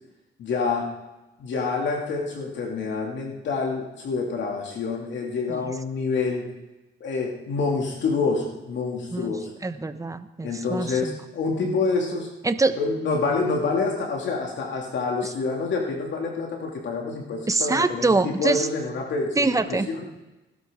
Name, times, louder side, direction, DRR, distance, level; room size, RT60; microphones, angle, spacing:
voice 1, 0.4-0.9 1.4-6.5 7.0-9.5 10.4-12.3 12.8-20.0, left 4 dB, 65° left, 0 dB, 2.5 m, -27 dB
voice 2, 9.6-11.2 12.4-12.8 15.2-15.3 17.5-18.7 19.4-19.9, right 3 dB, 15° right, 10 dB, 0.9 m, -24 dB
19.0 x 12.5 x 3.7 m, 1.0 s
cardioid pair, 90°, 20 cm